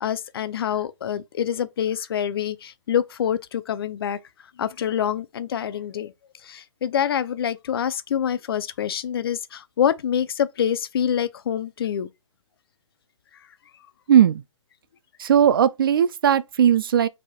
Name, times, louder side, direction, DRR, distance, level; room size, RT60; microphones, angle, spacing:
voice 1, 0.0-4.2 4.6-6.1 6.4-12.1, left 9 dB, 45° left, 0.5 m, -26 dB
voice 2, 14.1-14.4 15.2-17.1, right 9 dB, 45° right, 0.4 m, -18 dB
6.2 x 3.4 x 2.3 m
hypercardioid pair, 155°, 17 cm